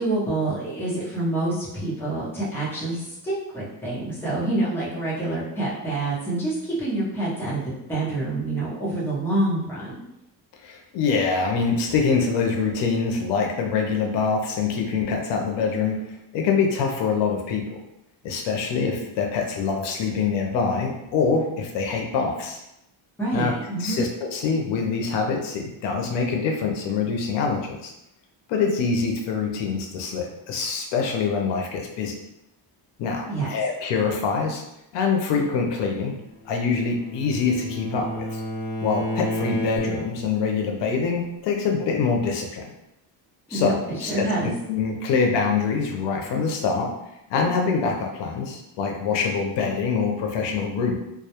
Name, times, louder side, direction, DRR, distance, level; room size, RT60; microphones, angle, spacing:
voice 1, 0.0-9.9 23.2-24.0 33.2-33.5 43.5-44.5, right 2 dB, 5° left, -8 dB, 0.6 m, -27 dB
voice 2, 10.6-16.0 16.3-17.8 18.2-22.6 23.3-23.5 23.8-27.9 28.5-32.2 33.0-34.6 34.9-36.1 36.5-38.4 38.8-42.7 43.5-46.9 47.3-50.9, left 5 dB, 80° left, 1 dB, 0.6 m, -25 dB
Bowed string instrument, 36.4-40.4, equal, 55° left, 1.0 m, -31 dB
2.2 x 2.0 x 2.8 m, 0.87 s
cardioid pair, 155°, 43 cm